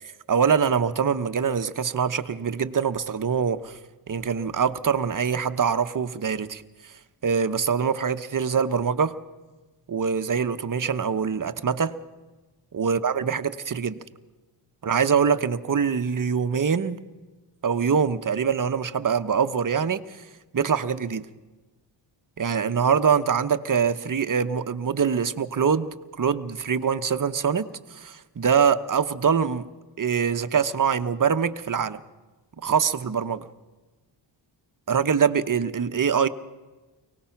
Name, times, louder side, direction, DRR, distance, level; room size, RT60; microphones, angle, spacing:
voice 1, 0.3-3.8 4.1-6.9 7.2-9.1 9.9-11.9 12.7-14.0 14.8-17.0 17.6-20.2 20.5-21.3 22.4-25.9 26.2-29.7 30.0-32.0 32.6-33.4 34.9-36.3, right 6 dB, 40° right, 10 dB, 1.0 m, -24 dB
24.0 x 18.5 x 5.9 m, 1.2 s
cardioid pair, 65°, 47 cm